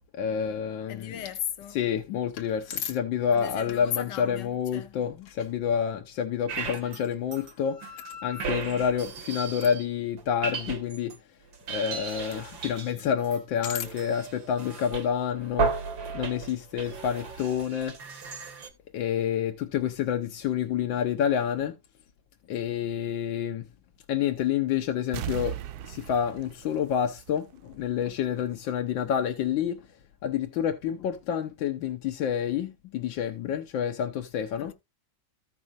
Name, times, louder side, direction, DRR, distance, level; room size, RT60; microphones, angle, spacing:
voice 1, 0.1-1.2 1.7-7.8 8.2-11.1 11.7-15.7 16.1-18.0 18.9-21.8 22.5-23.7 24.1-25.6 25.8-29.9 30.2-34.7, left 8 dB, 90° left, 1.6 m, -28 dB
voice 2, 0.9-1.8 3.3-5.0 8.5-8.8 34.6-34.7, left 10 dB, 70° left, 1.5 m, -37 dB
sound 1, 6.5-7.0 7.3-9.8 10.2-11.2 11.5-18.7, right 5 dB, 90° right, 2.4 m, -35 dB
sound 2, 25.1-27.7 28.1-28.2, right 11 dB, 65° right, 1.0 m, -38 dB
15.0 x 5.4 x 2.4 m
omnidirectional pair, 2.0 m